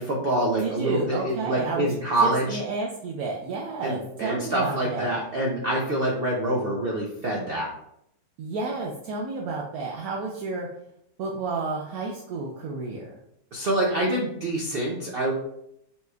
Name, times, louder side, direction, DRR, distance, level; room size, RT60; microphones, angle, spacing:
voice 1, 0.0-2.6 3.8-7.7 13.5-15.3, right 1 dB, 85° right, -2 dB, 0.5 m, -26 dB
voice 2, 0.6-1.9 2.2-5.2 8.4-10.7 11.2-13.0, right 3 dB, 70° right, -2 dB, 1.0 m, -31 dB
5.4 x 3.1 x 2.3 m, 0.76 s
omnidirectional pair, 1.9 m